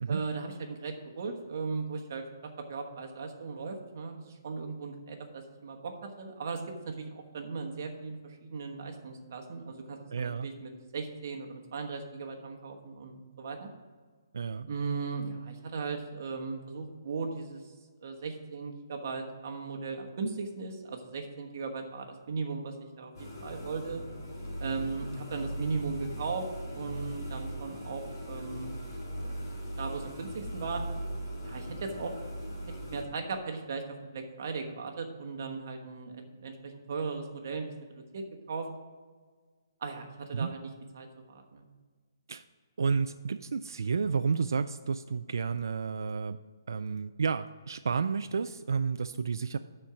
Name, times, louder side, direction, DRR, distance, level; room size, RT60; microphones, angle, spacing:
voice 1, 0.1-13.7 14.6-17.6 18.0-24.0 24.6-26.5 26.7-28.7 29.2-29.3 29.8-30.8 31.4-32.1 32.5-32.6 32.9-33.8 34.1-38.7 39.8-41.6, right 4 dB, 40° right, 3 dB, 1.3 m, -37 dB
voice 2, 10.1-10.5 14.3-14.7 40.3-40.5 42.3-42.4 42.8-46.4 46.7-49.6, right 5 dB, 70° right, 10 dB, 0.3 m, -31 dB
sound 1, 23.1-33.0, equal, 50° left, 2.9 m, -39 dB
11.5 x 4.5 x 5.0 m, 1.5 s
hypercardioid pair, 175°, 2 cm